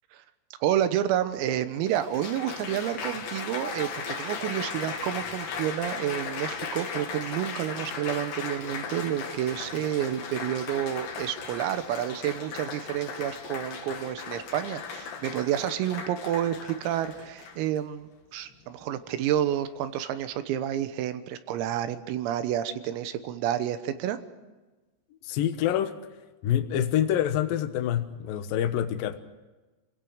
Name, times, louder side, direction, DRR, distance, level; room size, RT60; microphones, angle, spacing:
voice 1, 0.6-24.2, right 11 dB, 85° right, 10 dB, 3.9 m, -29 dB
Applause, 1.1-1.2 1.9-17.8 18.5-18.9, left 5 dB, 60° left, 3.6 m, -37 dB
voice 2, 25.2-26.0 26.4-29.2, left 10 dB, 85° left, 7 dB, 2.0 m, -26 dB
28.0 x 17.0 x 6.5 m, 1.2 s
omnidirectional pair, 5.9 m